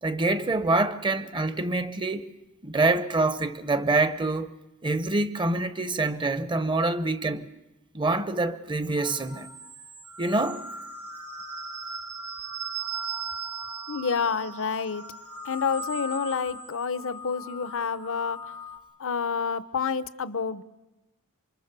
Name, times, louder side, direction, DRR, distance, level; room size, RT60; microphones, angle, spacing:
voice 1, 0.0-2.3 2.6-4.5 4.8-7.5 7.9-9.5 10.2-10.7, right 2 dB, 20° right, 0.8 m, -26 dB
sound 1, 8.9-18.8, right 2 dB, 90° right, 3.6 m, -38 dB
voice 2, 13.9-15.0 15.4-18.6 19.0-20.6, left 5 dB, 65° left, 0.8 m, -29 dB
27.0 x 24.5 x 6.8 m
head